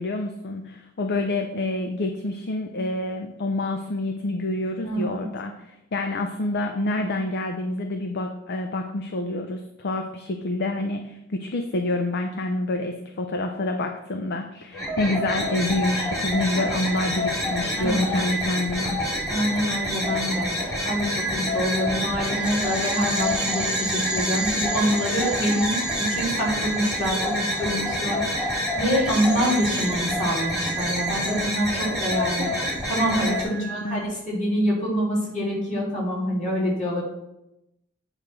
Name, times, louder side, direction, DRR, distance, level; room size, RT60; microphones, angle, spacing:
voice 1, 0.0-19.0 33.3-34.0, left 2 dB, 55° left, 5 dB, 0.6 m, -27 dB
voice 2, 4.8-5.2 17.8-18.2 19.3-32.5 32.9-37.0, equal, 35° left, -5 dB, 2.9 m, -26 dB
sound 1, 14.7-33.4, left 1 dB, 15° left, 2.2 m, -28 dB
sound 2, 21.1-34.0, right 4 dB, 5° right, 0.9 m, -34 dB
8.8 x 3.2 x 6.0 m, 0.87 s
head